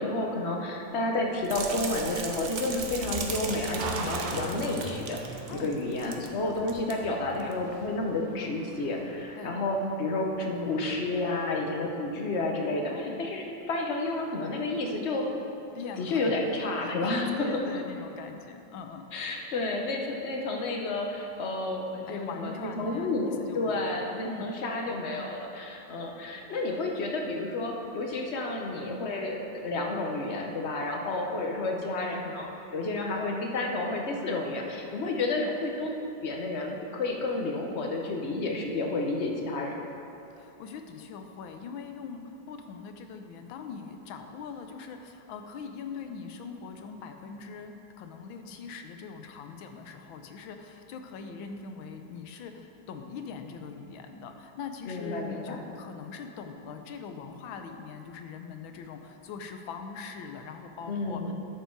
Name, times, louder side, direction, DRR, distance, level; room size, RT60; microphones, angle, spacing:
voice 1, 0.0-5.2 5.5-15.3 16.0-17.6 19.1-35.9 36.2-39.7 54.9-55.6 60.9-61.3, left 2 dB, 45° left, 1 dB, 1.0 m, -31 dB
sound 1, 1.3-10.5, right 3 dB, 75° right, 1.6 m, -41 dB
sound 2, 1.4-6.3 6.6-6.9 7.4-7.5, right 5 dB, 55° right, 0.8 m, -37 dB
voice 2, 12.9-13.3 15.7-16.4 16.8-19.1 22.0-24.0 24.2-24.5 35.2-35.5 40.3-61.3, left 5 dB, 90° left, 6 dB, 1.5 m, -42 dB
11.5 x 6.8 x 4.6 m, 2.9 s
omnidirectional pair, 2.1 m